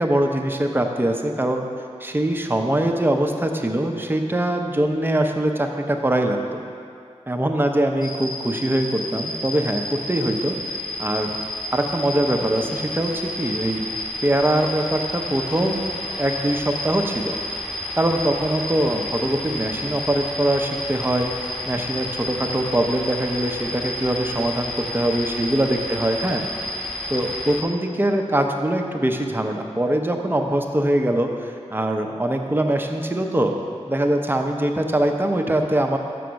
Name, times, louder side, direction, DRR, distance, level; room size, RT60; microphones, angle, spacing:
voice 1, 0.0-1.7 2.0-6.6 7.3-11.3 11.7-13.9 14.2-17.4 18.0-26.4 27.1-33.5 33.9-36.0, right 1 dB, 15° right, 3 dB, 0.7 m, -23 dB
sound 1, 8.0-27.6, left 1 dB, ahead, 1.0 m, -31 dB
6.9 x 5.8 x 6.3 m, 2.3 s
wide cardioid pair, 80°, 12 cm